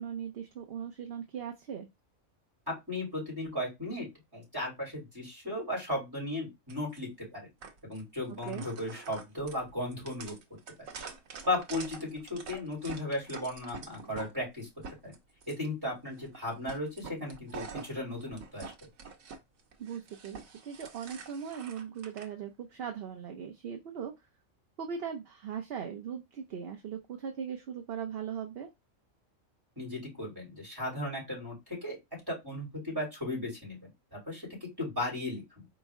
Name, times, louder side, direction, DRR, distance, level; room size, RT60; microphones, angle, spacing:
voice 1, 0.0-1.9 8.5-8.7 19.8-24.1 24.8-28.7, right 7 dB, 55° right, 0.8 m, -39 dB
voice 2, 2.7-4.1 4.3-7.5 7.8-10.4 11.4-14.7 15.0-15.1 15.5-18.7 29.8-32.0 32.3-35.7, left 1 dB, 15° right, 3.5 m, -36 dB
sound 1, 6.7-7.0 7.6-8.0 8.3-14.3 14.6-15.7 16.2-16.4 16.7-19.4 19.7-22.3, right 5 dB, 90° right, 1.3 m, -46 dB
4.5 x 3.1 x 3.5 m
omnidirectional pair, 1.4 m